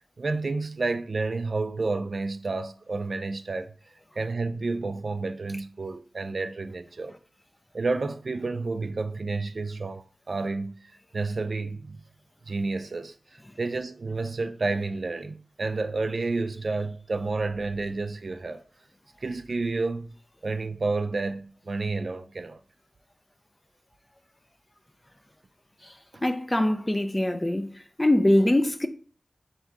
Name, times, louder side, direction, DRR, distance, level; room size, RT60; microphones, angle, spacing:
voice 1, 0.2-3.7 4.2-7.2 7.7-12.0 12.5-18.6 19.2-20.2 20.4-22.6 26.1-26.2, right 3 dB, 70° right, 0.4 m, -30 dB
voice 2, 26.2-27.7 28.0-28.9, left 1 dB, 20° left, 0.5 m, -22 dB
3.5 x 2.7 x 4.6 m
wide cardioid pair, 70°, 0 cm